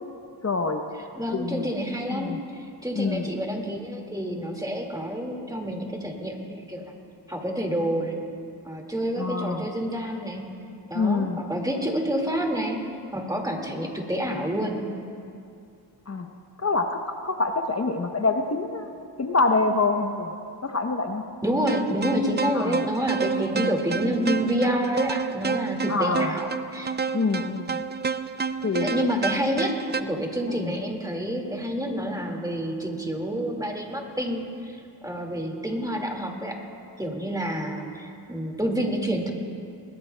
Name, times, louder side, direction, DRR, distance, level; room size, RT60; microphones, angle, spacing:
voice 1, 0.4-0.8 1.3-1.7 2.1-2.4 3.0-3.3 9.2-9.7 10.9-11.4 16.1-16.3 16.6-18.9 19.2-20.3 20.6-21.2 22.5-22.8 25.9-26.3 27.1-27.8 28.6-29.1 30.5-30.7, left 3 dB, 35° left, 4 dB, 0.8 m, -26 dB
voice 2, 1.2-6.9 7.3-8.2 8.6-10.4 10.9-12.8 13.1-14.8 21.4-27.0 28.8-36.6 37.0-39.3, equal, 10° right, 1 dB, 1.9 m, -28 dB
sound 1, 21.7-30.0, right 5 dB, 25° right, 0.3 m, -29 dB
22.0 x 20.0 x 2.2 m, 2.5 s
wide cardioid pair, 90°, 44 cm